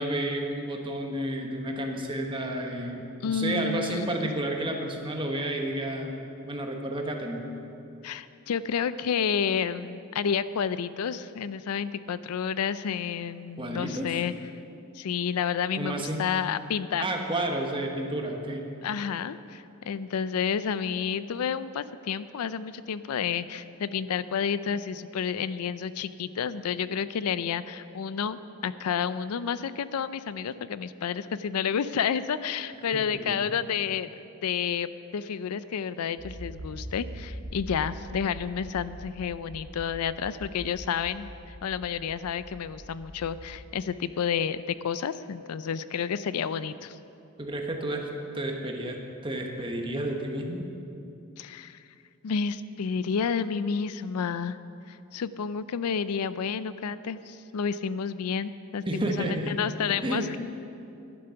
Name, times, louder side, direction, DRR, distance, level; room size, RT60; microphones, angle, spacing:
voice 1, 0.0-7.5 13.6-14.2 15.7-16.3 17.0-18.7 32.9-33.4 47.4-50.7 58.9-59.6 60.0-60.3, right 1 dB, 20° right, 2 dB, 1.2 m, -31 dB
voice 2, 3.2-4.3 8.0-14.3 14.9-17.0 18.8-34.1 34.4-34.9 35.1-47.0 51.4-51.8 52.2-54.6 54.9-60.4, left 7 dB, 90° left, 15 dB, 0.4 m, -30 dB
Accelerating revving vroom, 36.2-43.5, equal, 85° right, 1.8 m, -42 dB
11.5 x 11.5 x 5.7 m, 2.7 s
head